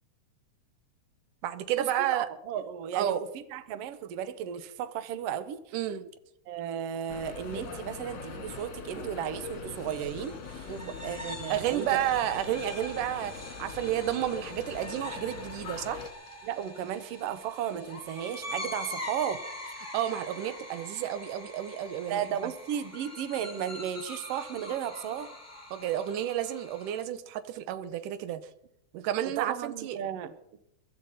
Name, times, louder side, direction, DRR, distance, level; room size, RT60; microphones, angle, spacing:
voice 1, 1.4-2.3 3.0-3.2 5.7-6.1 8.9-9.0 10.7-10.9 11.5-16.0 19.9-22.5 25.7-28.4 28.9-30.0, right 11 dB, 85° right, 12 dB, 2.4 m, -31 dB
voice 2, 2.1-5.6 6.5-10.7 11.0-11.9 16.4-19.4 22.1-25.3 29.4-30.3, right 9 dB, 65° right, 12 dB, 1.7 m, -34 dB
sound 1, 7.1-16.1, left 5 dB, 50° left, 2.1 m, -42 dB
sound 2, 9.7-27.0, left 1 dB, 5° left, 1.6 m, -43 dB
23.0 x 12.5 x 4.1 m, 0.78 s
omnidirectional pair, 3.6 m